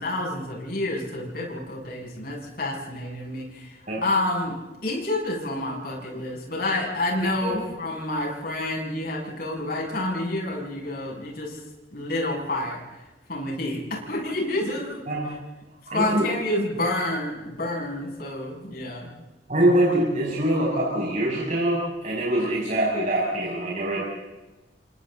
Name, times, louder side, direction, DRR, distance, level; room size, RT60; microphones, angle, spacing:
voice 1, 0.0-11.6 11.9-12.8 13.3-15.4 15.9-19.1, left 1 dB, 55° left, -1 dB, 7.5 m, -29 dB
voice 2, 15.9-16.2 19.5-24.0, right 1 dB, 45° right, -5 dB, 6.5 m, -24 dB
29.5 x 27.0 x 4.0 m, 1.1 s
head